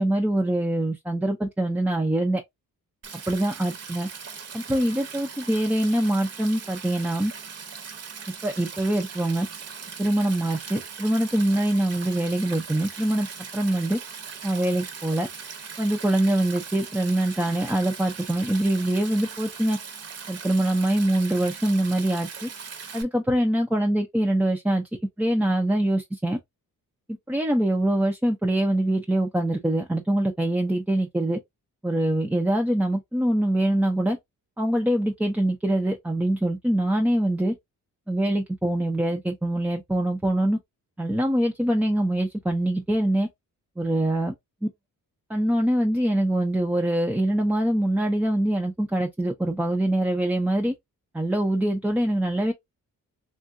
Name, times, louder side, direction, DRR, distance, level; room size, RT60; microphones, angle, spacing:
voice 1, 0.0-2.4 3.3-4.1 4.5-7.3 8.4-9.5 10.0-13.3 13.5-14.0 14.4-15.3 15.8-19.8 20.3-22.5 22.9-24.8 25.2-26.4 27.1-31.4 31.8-34.2 34.6-37.5 38.1-40.6 41.0-43.3 43.8-44.3 45.3-50.8 51.1-52.5, right 1 dB, 5° right, 0.3 m, -24 dB
Stream, 3.0-23.0, right 6 dB, 45° right, 0.8 m, -40 dB
3.7 x 2.2 x 2.4 m
wide cardioid pair, 160°, 34 cm